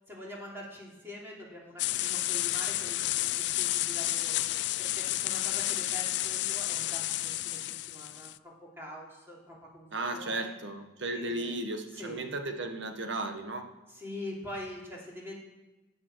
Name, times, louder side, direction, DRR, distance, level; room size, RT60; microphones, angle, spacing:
voice 1, 0.1-4.4 4.8-10.5 11.1-11.6 11.9-12.2 13.9-15.3, left 1 dB, 15° right, -4 dB, 3.1 m, -44 dB
sound 1, 1.8-8.4, left 16 dB, 65° left, 0.4 m, -31 dB
voice 2, 9.9-13.6, right 2 dB, 75° right, 6 dB, 1.4 m, -35 dB
14.0 x 8.9 x 6.2 m, 1.1 s
head